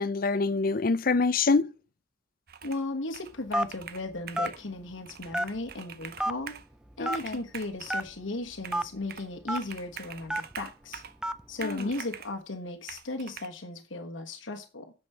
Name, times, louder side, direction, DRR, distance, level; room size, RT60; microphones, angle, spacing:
voice 1, 0.0-1.7 7.0-7.4 11.6-11.9, left 4 dB, 45° left, 0.5 m, -26 dB
Computer keyboard, 2.5-2.9 3.1-4.6 5.1-6.7 7.0-8.1 8.6-9.3 9.6-11.2 11.6-12.4 12.9-13.5, right 8 dB, 50° right, 0.8 m, -44 dB
voice 2, 2.6-6.5 7.0-11.0 11.5-14.9, left 2 dB, 75° left, 1.4 m, -36 dB
Telephone, 3.5-3.8 4.3-4.5 5.3-5.7 6.2-6.3 7.0-7.2 7.9-8.0 8.7-8.8 9.5-9.6 10.3-10.5 11.2-11.4, right 1 dB, 5° right, 0.4 m, -28 dB
9.5 x 7.0 x 5.5 m
head